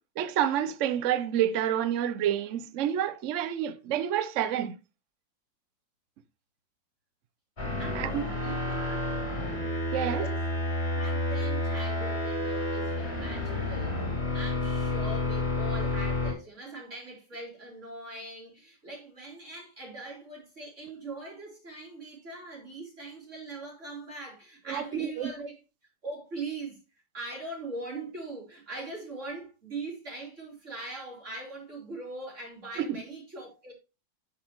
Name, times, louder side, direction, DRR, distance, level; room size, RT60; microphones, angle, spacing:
voice 1, 0.2-4.8 7.9-8.3 9.9-10.3 24.7-25.3 32.8-33.0, right 10 dB, 75° right, 0.6 m, -28 dB
sound 1, 7.6-16.3, left 2 dB, 30° left, 3.6 m, -30 dB
voice 2, 7.8-9.1 10.0-10.4 10.9-14.0 14.3-25.5 26.0-26.8 27.1-33.7, right 2 dB, 40° right, 4.1 m, -41 dB
8.7 x 7.2 x 3.0 m
omnidirectional pair, 2.0 m